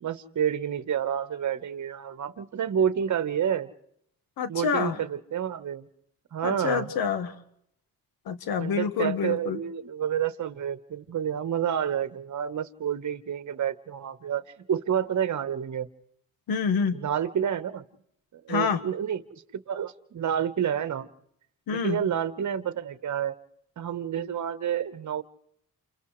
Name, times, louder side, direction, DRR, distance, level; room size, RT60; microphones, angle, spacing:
voice 1, 0.0-3.7 4.5-5.9 6.3-6.9 8.6-15.9 16.9-17.8 18.3-21.1 21.8-23.3 23.8-25.2, right 9 dB, 55° right, 12 dB, 1.3 m, -29 dB
voice 2, 4.4-5.0 6.4-7.3 8.3-9.6 16.5-17.0 18.5-18.8 21.7-22.0, left 6 dB, 80° left, 10 dB, 1.7 m, -27 dB
29.5 x 28.5 x 3.3 m, 0.72 s
cardioid pair, 85°, 36 cm